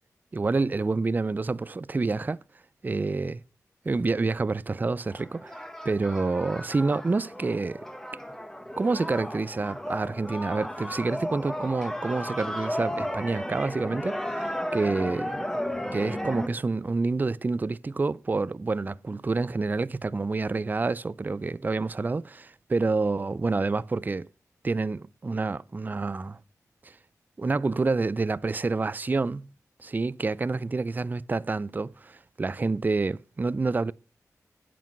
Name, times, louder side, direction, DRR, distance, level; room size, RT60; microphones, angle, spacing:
voice 1, 0.3-2.4 2.8-3.4 3.8-5.6 5.8-7.9 8.8-15.4 15.9-24.3 24.6-26.4 26.8-26.9 27.4-29.5 29.8-33.9, right 3 dB, 30° right, 0.3 m, -28 dB
sound 1, 5.1-16.5, equal, 5° left, 1.2 m, -34 dB
9.1 x 6.0 x 5.9 m
cardioid pair, 50°, 6 cm